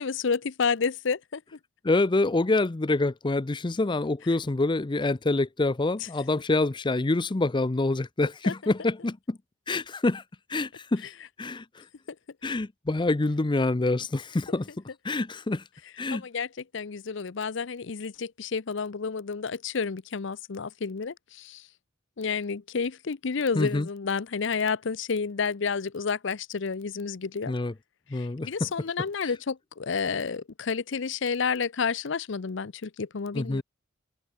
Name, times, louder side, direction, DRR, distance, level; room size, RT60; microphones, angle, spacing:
voice 1, 0.0-1.4 6.0-6.1 8.4-8.5 8.8-8.9 11.0-11.1 16.1-21.7 22.2-27.5 28.1-33.6, left 5 dB, 65° left, 0.6 m, -30 dB
voice 2, 1.8-9.4 9.7-10.2 10.5-11.0 11.4-11.6 12.4-14.7 15.0-15.6 16.0-16.2 23.6-23.9 27.5-27.7 28.1-28.5 33.4-33.6, left 2 dB, 25° left, 0.5 m, -26 dB
head